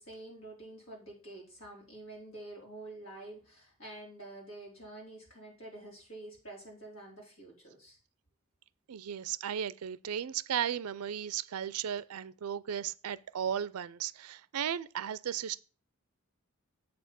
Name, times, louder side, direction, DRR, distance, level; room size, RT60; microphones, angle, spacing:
voice 1, 0.0-8.0, right 2 dB, 60° left, 4.1 m, -48 dB
voice 2, 8.9-15.6, right 9 dB, 85° right, 0.4 m, -35 dB
7.7 x 4.3 x 6.8 m
head